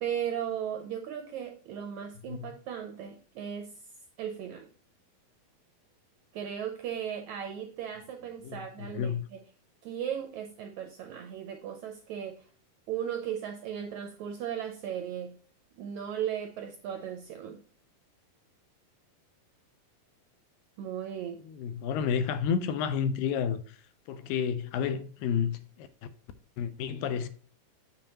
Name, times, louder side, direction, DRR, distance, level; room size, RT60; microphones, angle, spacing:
voice 1, 0.0-3.7 4.2-4.7 6.3-9.4 9.8-12.5 12.9-15.4 15.8-17.6 20.8-21.4, right 9 dB, 80° right, 1.7 m, -36 dB
voice 2, 8.4-9.2 21.4-23.8 24.1-25.9 26.6-27.3, left 7 dB, 80° left, 2.3 m, -31 dB
7.7 x 6.8 x 2.9 m
omnidirectional pair, 4.1 m